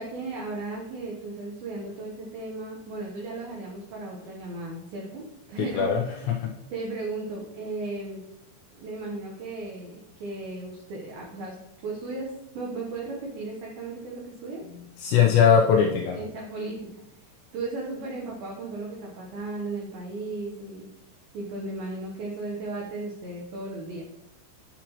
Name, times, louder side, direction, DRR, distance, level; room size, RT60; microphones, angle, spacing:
voice 1, 0.0-6.3 6.7-8.2 8.8-11.6 11.8-14.6 16.1-16.9 17.2-20.9 21.3-24.0, right 3 dB, 75° right, -2 dB, 2.2 m, -35 dB
voice 2, 5.6-6.5 15.0-16.2, left 7 dB, 80° left, 0 dB, 2.6 m, -21 dB
10.0 x 5.9 x 3.0 m, 0.87 s
omnidirectional pair, 5.7 m